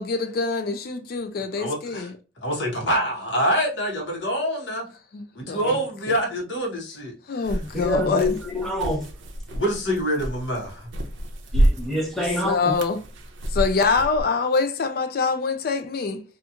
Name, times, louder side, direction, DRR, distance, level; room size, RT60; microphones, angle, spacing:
voice 1, 0.0-2.1 5.1-5.6 7.3-8.4 12.4-13.0 13.5-16.2, left 4 dB, 50° left, 0.3 m, -25 dB
voice 2, 1.6-2.1 2.4-4.9 5.3-7.4 9.5-10.9, equal, 75° left, 1.0 m, -26 dB
sound 1, 7.4-14.2, right 1 dB, 80° right, 0.5 m, -28 dB
voice 3, 7.7-9.1 11.5-12.6, left 1 dB, ahead, 0.6 m, -26 dB
2.8 x 2.4 x 2.4 m
head